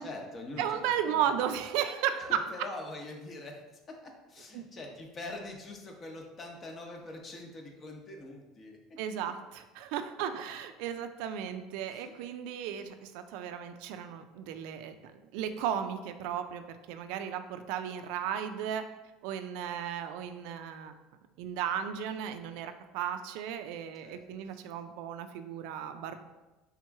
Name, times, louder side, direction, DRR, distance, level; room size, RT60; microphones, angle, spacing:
voice 1, 0.0-0.8 1.1-1.4 2.2-3.6 4.0-8.8 11.9-12.1 24.0-24.5, left 2 dB, 30° left, 2 dB, 0.8 m, -44 dB
voice 2, 0.6-2.4 4.5-4.6 9.0-16.6 16.9-18.8 19.2-20.9 21.4-26.2, right 9 dB, 75° right, 9 dB, 0.4 m, -35 dB
3.5 x 3.0 x 4.6 m, 1.1 s
cardioid pair, 130°, 0 cm